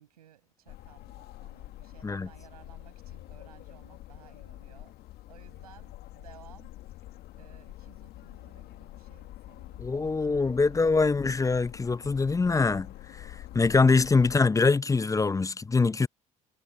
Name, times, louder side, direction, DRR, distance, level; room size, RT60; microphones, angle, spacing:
voice 1, 0.0-5.0 5.3-11.2, right 11 dB, 80° right, 6.9 m, -57 dB
sound 1, 0.7-14.4, left 15 dB, 60° left, 1.7 m, -46 dB
voice 2, 9.8-12.9 13.5-16.1, left 4 dB, 15° left, 0.6 m, -23 dB
hypercardioid pair, 60°, 19 cm